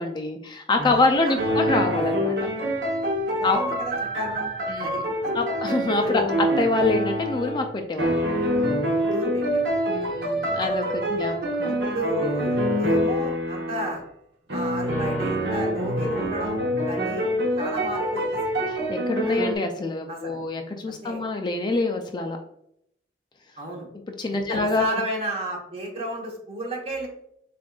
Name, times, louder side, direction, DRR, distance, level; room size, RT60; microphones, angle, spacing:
voice 1, 0.0-2.4 3.4-3.6 4.7-5.0 5.3-8.2 9.9-11.8 18.7-22.4 24.2-24.9, left 3 dB, 25° left, 4 dB, 0.4 m, -26 dB
sound 1, 0.8-1.0 1.4-7.7 8.0-14.0 14.5-19.6, equal, 75° right, 1.0 m, -26 dB
voice 2, 0.9-1.4 3.2-4.5 4.8-5.3 6.0-6.2 9.1-9.7 10.3-10.4 11.7-14.0 14.5-16.6 16.8-17.3 17.5-18.2 19.2-19.4 20.1-20.4 20.9-21.2 23.6-23.9 24.3-27.1, right 1 dB, 35° right, -1 dB, 1.1 m, -32 dB
7.1 x 2.5 x 2.3 m, 0.73 s
head